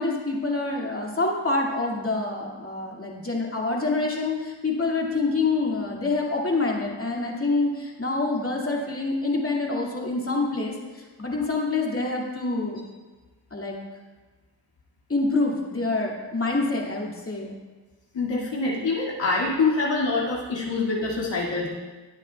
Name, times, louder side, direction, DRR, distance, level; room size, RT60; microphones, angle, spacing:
voice 1, 0.0-12.8 13.5-13.8 15.1-17.5, left 3 dB, 30° left, -2 dB, 2.2 m, -26 dB
voice 2, 18.1-21.7, left 3 dB, 65° left, -5 dB, 2.2 m, -25 dB
18.0 x 9.0 x 2.3 m, 1.3 s
cardioid pair, 80°, 47 cm